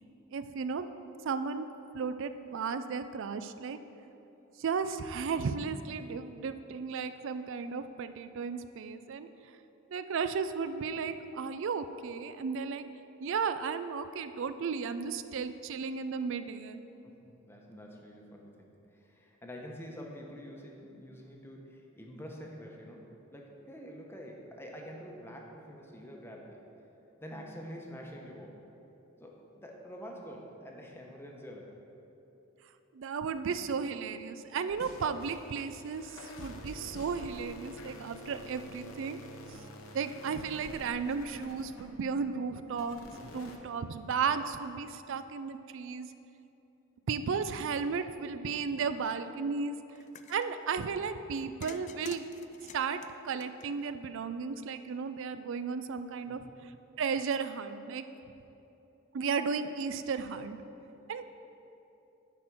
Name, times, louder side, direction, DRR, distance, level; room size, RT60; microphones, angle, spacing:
voice 1, 0.3-0.9 1.2-1.7 1.9-3.8 4.6-9.3 9.9-12.9 13.2-16.8 32.9-39.2 39.9-46.1 47.1-49.8 50.3-52.3 52.7-56.7 57.0-58.1 59.1-60.6 61.1-61.2, right 5 dB, 65° right, 11 dB, 0.4 m, -34 dB
voice 2, 17.0-23.1 23.3-26.6 27.2-28.6 29.2-31.8 56.3-56.7, equal, 10° left, 0 dB, 0.9 m, -47 dB
sound 1, 34.7-42.1 42.7-43.6, left 1 dB, 75° left, 0.9 m, -48 dB
sound 2, 50.0-50.5 51.6-54.1, left 7 dB, 35° left, 0.3 m, -50 dB
9.7 x 4.3 x 5.9 m, 2.9 s
head